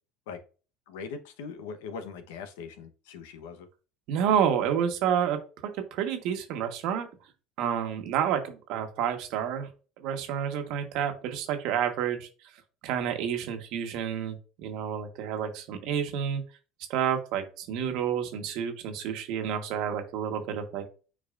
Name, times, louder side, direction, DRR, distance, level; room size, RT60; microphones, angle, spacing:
voice 1, 0.9-3.7, left 5 dB, 85° left, 8 dB, 1.0 m, -41 dB
voice 2, 4.1-7.1 7.6-9.7 10.0-12.3 12.8-16.4 16.9-20.8, right 8 dB, 70° right, 6 dB, 1.3 m, -29 dB
8.4 x 4.7 x 2.5 m, 0.36 s
supercardioid pair, 90°, 0 cm